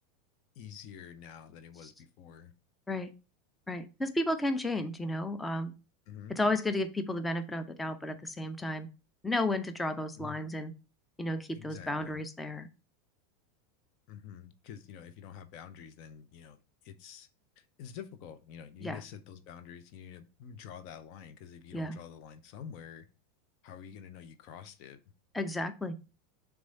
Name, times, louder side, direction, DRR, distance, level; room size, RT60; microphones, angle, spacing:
voice 1, 0.5-2.5 6.1-6.4 10.2-10.4 11.5-12.2 14.1-17.3 17.6-23.1 23.6-25.0, left 8 dB, 50° left, 10 dB, 0.7 m, -48 dB
voice 2, 3.7-5.7 6.3-8.9 9.2-10.7 11.2-12.7 18.8-19.0 21.7-22.0 25.3-26.0, left 1 dB, 10° left, 10 dB, 0.7 m, -33 dB
6.2 x 3.6 x 5.3 m, 0.31 s
figure-of-eight pair, 85°, 0 cm